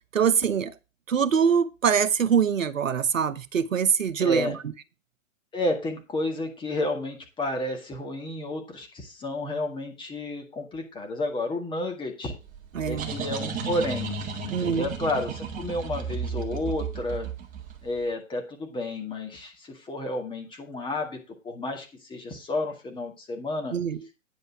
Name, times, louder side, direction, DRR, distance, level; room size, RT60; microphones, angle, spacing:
voice 1, 0.1-0.7 1.1-4.6 12.7-13.1 14.5-14.9 23.7-24.0, right 7 dB, 75° right, 1.0 m, -24 dB
voice 2, 4.2-4.6 5.5-12.3 12.8-17.3 17.8-21.2 21.4-23.7, left 2 dB, 10° left, 1.9 m, -31 dB
sound 1, 12.5-18.0, right 5 dB, 20° right, 1.7 m, -34 dB
9.5 x 5.4 x 6.1 m
figure-of-eight pair, 115°, 39 cm